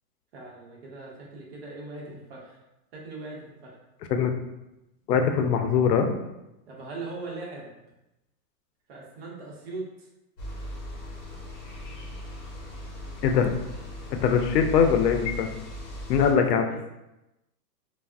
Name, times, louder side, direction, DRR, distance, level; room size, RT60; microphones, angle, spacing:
voice 1, 0.3-2.6 2.9-3.7 6.7-7.7 8.9-10.1 16.6-16.9, right 3 dB, 40° right, -2 dB, 0.6 m, -40 dB
voice 2, 5.1-6.1 13.2-13.5 14.2-15.5 16.1-16.7, left 7 dB, 80° left, 5 dB, 0.6 m, -22 dB
sound 1, 10.4-16.3, left 1 dB, 45° left, 0.9 m, -38 dB
3.3 x 2.0 x 2.4 m, 0.94 s
hypercardioid pair, 145°, 48 cm